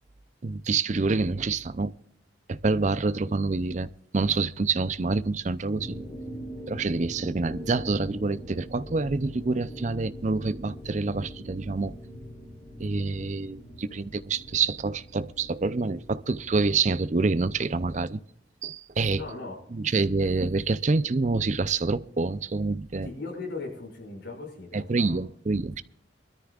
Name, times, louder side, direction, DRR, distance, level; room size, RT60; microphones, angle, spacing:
voice 1, 0.4-1.9 2.5-3.9 4.1-6.0 6.7-11.9 12.8-18.2 18.6-19.2 19.7-23.1 24.7-25.8, right 3 dB, 40° right, 0.5 m, -27 dB
sound 1, 5.7-16.6, equal, 10° left, 5.1 m, -43 dB
voice 2, 19.2-19.5 23.0-25.2, left 3 dB, 70° left, 6.2 m, -38 dB
24.0 x 13.5 x 2.4 m
head